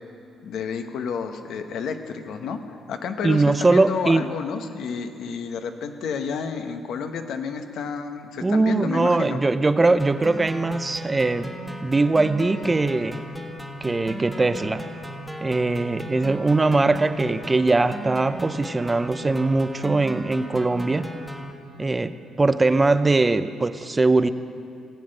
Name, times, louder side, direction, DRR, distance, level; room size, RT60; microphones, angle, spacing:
voice 1, 0.4-9.4, left 6 dB, 75° left, 7 dB, 0.9 m, -30 dB
voice 2, 3.2-4.3 8.4-11.5 11.8-13.2 13.8-14.8 15.4-21.1 21.8-24.3, right 3 dB, 20° right, 12 dB, 0.5 m, -21 dB
sound 1, 10.0-21.5, right 1 dB, 5° left, 1.3 m, -36 dB
17.0 x 7.8 x 6.5 m, 2.5 s
cardioid pair, 90°, 0 cm